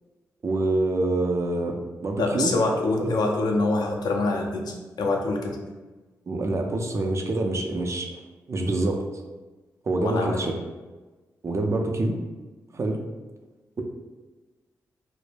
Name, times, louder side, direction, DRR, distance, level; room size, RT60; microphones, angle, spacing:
voice 1, 0.4-2.5 3.0-3.1 6.3-8.1 8.5-9.0 9.8-10.5 11.4-12.2 12.7-13.0, right 2 dB, 40° right, 3 dB, 0.4 m, -26 dB
voice 2, 2.2-5.6 10.0-10.5, left 2 dB, 65° left, 2 dB, 0.4 m, -25 dB
2.1 x 2.0 x 3.2 m, 1.2 s
supercardioid pair, 40°, 7 cm